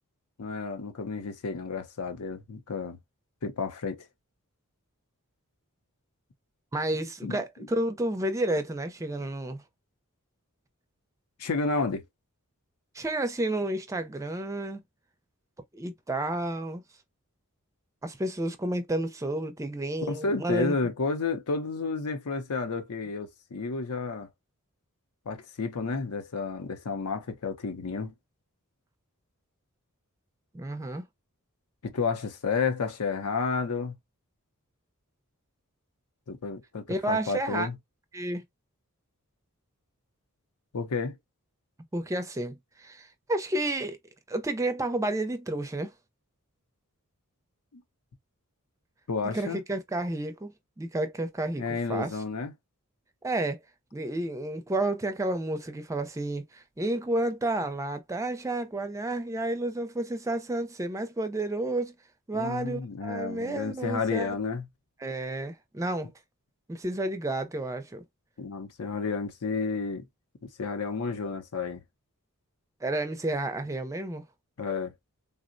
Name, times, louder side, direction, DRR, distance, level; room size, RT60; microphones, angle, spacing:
voice 1, 0.4-3.0 3.4-4.1 7.2-7.4 11.4-12.0 20.1-24.3 25.3-28.1 31.8-34.0 36.3-37.7 40.7-41.2 47.7-47.8 49.1-49.6 51.6-52.5 62.3-64.7 68.4-70.0 70.4-71.8 74.6-74.9, left 4 dB, 80° left, 0.6 m, -31 dB
voice 2, 6.7-9.6 12.9-14.8 15.7-16.8 18.0-20.7 30.5-31.1 36.9-37.7 38.1-38.4 41.9-44.0 44.3-45.9 49.2-52.1 53.2-53.6 53.9-61.9 62.3-64.3 65.0-66.1 66.7-68.0 72.8-74.2, right 1 dB, 15° right, 0.4 m, -31 dB
3.6 x 2.0 x 2.5 m
head